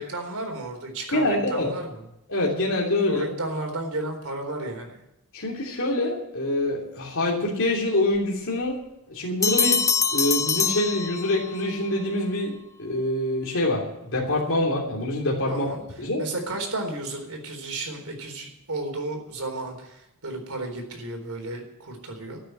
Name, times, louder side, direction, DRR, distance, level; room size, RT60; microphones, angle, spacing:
voice 1, 0.0-2.0 3.1-5.0 15.5-15.8 16.2-22.4, right 2 dB, 75° right, 3 dB, 4.0 m, -33 dB
voice 2, 1.1-1.7 2.3-3.3 5.3-8.8 9.1-9.8 10.1-13.8 14.1-15.7 16.0-16.2, left 1 dB, 60° left, -3 dB, 3.2 m, -25 dB
sound 1, 9.4-11.7, left 6 dB, 15° left, 0.7 m, -24 dB
13.5 x 9.1 x 9.2 m, 0.86 s
head